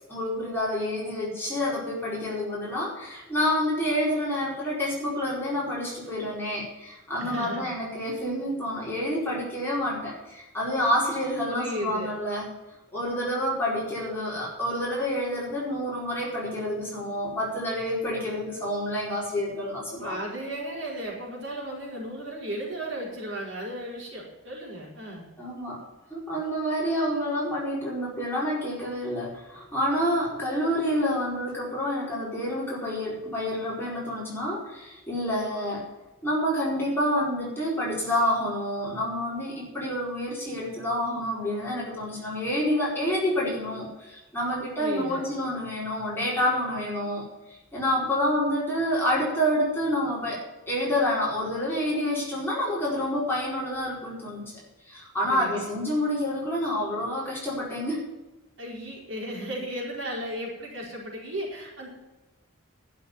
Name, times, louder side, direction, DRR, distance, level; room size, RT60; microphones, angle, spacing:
voice 1, 0.1-12.4 12.9-20.2 25.4-35.8 36.2-50.4 50.7-54.4 54.8-58.0, equal, 10° left, -6 dB, 4.8 m, -28 dB
voice 2, 7.2-7.7 11.4-12.1 20.0-25.2 44.8-45.3 55.3-55.7 58.6-61.9, right 1 dB, 60° right, -3 dB, 4.9 m, -35 dB
12.0 x 6.9 x 9.0 m, 1.1 s
head